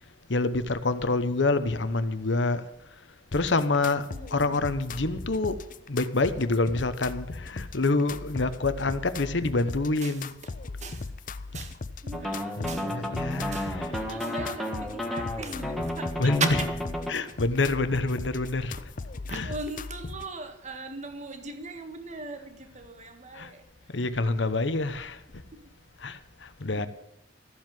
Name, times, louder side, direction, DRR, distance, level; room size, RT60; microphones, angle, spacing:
voice 1, 0.3-2.6 3.3-4.1 4.3-5.6 5.9-10.3 12.6-13.8 16.2-16.5 17.1-18.8 19.3-19.5 23.3-23.5 23.9-25.2 26.0-26.9, left 3 dB, 75° left, 1.1 m, -27 dB
sound 1, 3.3-20.3, left 3 dB, 45° left, 0.6 m, -39 dB
voice 2, 4.1-4.7 10.0-10.5 10.8-11.1 11.5-11.8 12.0-13.3 13.5-16.7 17.2-17.3 19.3-23.6 25.5-25.7 26.8-26.9, right 3 dB, 40° right, 1.7 m, -38 dB
sound 2, 12.1-17.1, left 1 dB, ahead, 1.7 m, -32 dB
14.0 x 7.6 x 9.4 m
head